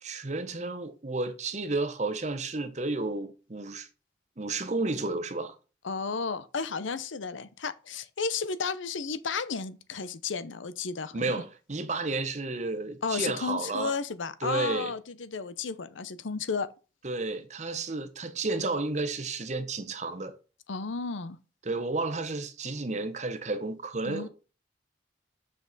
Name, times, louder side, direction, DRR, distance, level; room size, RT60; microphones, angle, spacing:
voice 1, 0.0-3.9 4.4-5.5 11.1-14.0 14.4-14.9 17.0-20.4 21.6-24.3, right 3 dB, 40° right, 0.9 m, -32 dB
voice 2, 5.8-11.4 13.0-16.7 20.7-21.4 24.1-24.3, left 5 dB, 85° left, 0.7 m, -33 dB
7.4 x 6.0 x 4.0 m
head